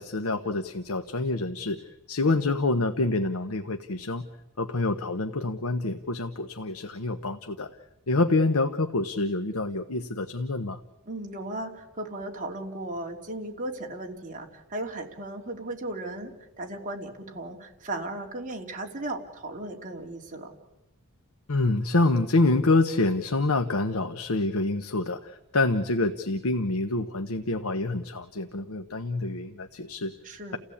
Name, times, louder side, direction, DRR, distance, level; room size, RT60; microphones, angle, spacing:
voice 1, 0.0-1.8 2.1-4.3 4.6-7.7 8.1-10.8 21.5-30.1, left 2 dB, 70° left, 8 dB, 1.0 m, -26 dB
voice 2, 11.1-20.5 30.2-30.6, right 1 dB, 35° right, 1 dB, 3.0 m, -36 dB
30.0 x 16.0 x 8.6 m, 1.1 s
head